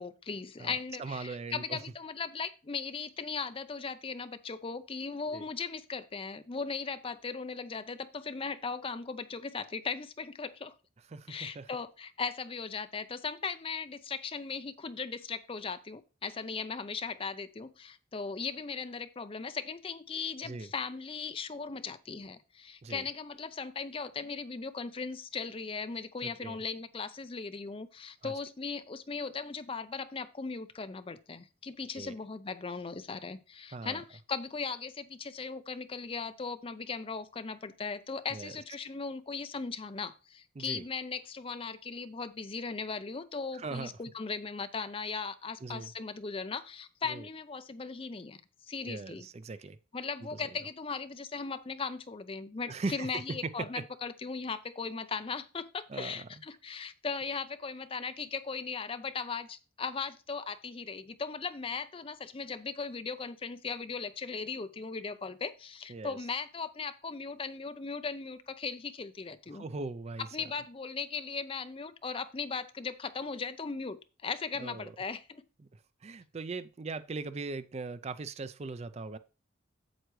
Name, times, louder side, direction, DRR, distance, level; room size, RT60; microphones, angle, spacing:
voice 1, 0.0-10.7 11.3-48.4 48.7-49.3 49.9-69.6 70.2-75.4, left 5 dB, 30° left, 12 dB, 0.5 m, -38 dB
voice 2, 0.6-1.8 5.3-5.4 11.1-11.7 20.4-20.7 22.8-23.0 26.2-26.6 28.2-28.3 31.9-32.2 33.7-34.0 38.3-38.6 40.6-40.8 43.5-44.0 45.6-45.9 47.1-47.3 48.9-49.8 50.3-50.4 52.7-53.8 55.9-56.3 65.9-66.2 69.5-70.3 74.6-75.0 76.0-79.2, right 3 dB, 35° right, 13 dB, 0.4 m, -39 dB
8.0 x 7.8 x 3.1 m, 0.33 s
head